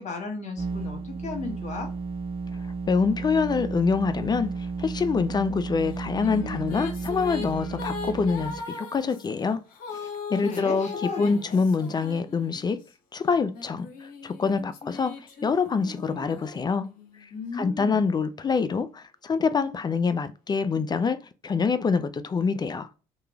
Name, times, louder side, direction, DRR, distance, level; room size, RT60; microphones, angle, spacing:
voice 1, 0.0-1.9 10.0-11.6 17.3-18.2, left 4 dB, 50° left, 1.4 m, -35 dB
sound 1, 0.6-8.6, right 4 dB, 35° right, 0.5 m, -33 dB
voice 2, 2.9-9.6 10.3-12.8 13.1-15.2 15.4-16.9 17.2-22.9, left 5 dB, 25° left, 0.3 m, -26 dB
sound 2, 5.9-12.9 13.5-17.3, left 5 dB, 65° left, 0.8 m, -39 dB
3.0 x 2.3 x 2.2 m
hypercardioid pair, 65°, 16 cm